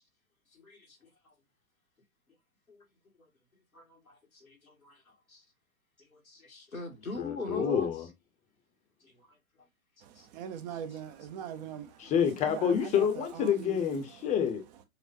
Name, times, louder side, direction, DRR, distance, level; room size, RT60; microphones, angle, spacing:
voice 1, 0.5-1.3 2.7-2.8 3.2-3.3 3.7-5.4 6.0-7.9 9.0-9.4 10.2-10.3 11.5-11.6, left 2 dB, 90° left, 1.9 m, -42 dB
voice 2, 7.1-8.1 12.0-14.6, left 8 dB, 15° left, 0.9 m, -28 dB
voice 3, 10.4-11.8 12.4-13.8, right 9 dB, 30° right, 0.8 m, -41 dB
6.8 x 2.5 x 2.5 m
figure-of-eight pair, 115°, 41 cm